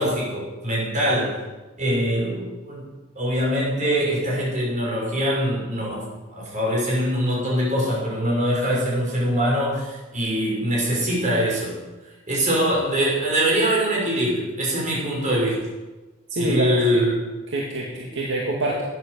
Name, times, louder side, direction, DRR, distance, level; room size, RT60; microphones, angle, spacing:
voice 1, 0.0-1.4 1.8-2.9 3.2-11.8 12.3-15.6 16.4-17.1, equal, 40° right, -4 dB, 5.9 m, -23 dB
voice 2, 16.3-17.0 17.5-18.8, right 1 dB, 65° right, -2 dB, 2.0 m, -26 dB
12.5 x 9.9 x 6.9 m, 1.2 s
head